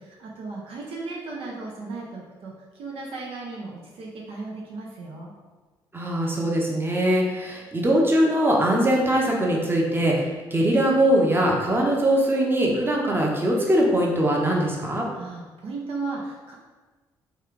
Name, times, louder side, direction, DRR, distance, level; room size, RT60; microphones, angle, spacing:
voice 1, 0.0-2.5 2.8-5.3 15.1-16.5, right 3 dB, 60° right, -3 dB, 0.6 m, -35 dB
voice 2, 5.9-15.0, right 1 dB, 20° right, -2 dB, 0.9 m, -21 dB
3.1 x 2.4 x 3.6 m, 1.3 s
hypercardioid pair, 50°, 11 cm